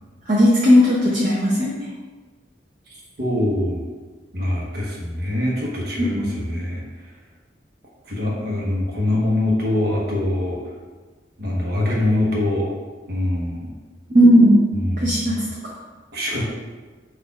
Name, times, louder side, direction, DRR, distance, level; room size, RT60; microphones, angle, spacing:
voice 1, 0.3-1.8 6.1-6.3 14.1-14.6 15.0-15.4, equal, 45° right, -5 dB, 0.7 m, -15 dB
voice 2, 3.2-3.8 4.3-6.8 8.1-10.6 11.4-12.7 13.1-13.7 14.7-15.1 16.1-16.4, left 1 dB, 65° right, -3 dB, 1.1 m, -23 dB
4.1 x 2.6 x 4.7 m, 1.3 s
head